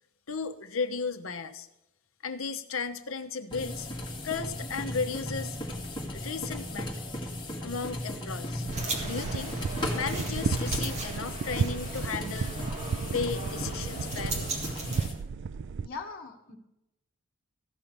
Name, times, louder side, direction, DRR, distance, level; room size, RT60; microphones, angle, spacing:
voice 1, 0.3-1.7 2.2-3.9 4.2-5.6 6.1-6.9 7.6-8.7 9.0-9.6 9.9-12.5 13.1-14.5, left 5 dB, 70° left, 9 dB, 0.9 m, -34 dB
sound 1, 3.5-15.1, left 1 dB, 20° left, 2.0 m, -36 dB
sound 2, 8.6-15.9, right 5 dB, 55° right, 0.3 m, -34 dB
sound 3, 8.7-15.1, right 2 dB, 30° right, 1.9 m, -38 dB
voice 2, 15.8-16.6, left 4 dB, 45° left, 0 dB, 1.5 m, -40 dB
15.0 x 5.7 x 6.8 m, 0.89 s
head